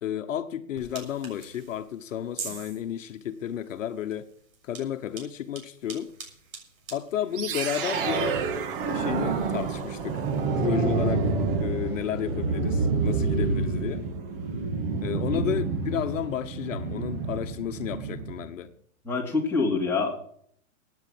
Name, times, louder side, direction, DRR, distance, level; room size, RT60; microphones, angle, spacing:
voice 1, 0.0-4.3 4.6-6.1 6.9-8.4 8.8-10.2 10.6-11.3 11.5-14.1 15.0-18.7, left 10 dB, 60° left, 1.2 m, -32 dB
sound 1, 0.7-10.5, right 5 dB, 70° right, 6.7 m, -46 dB
sound 2, 7.3-18.5, right 4 dB, 40° right, 2.0 m, -28 dB
voice 2, 19.0-20.2, left 4 dB, 5° left, 3.0 m, -26 dB
16.5 x 9.6 x 6.0 m
hypercardioid pair, 160°, 42 cm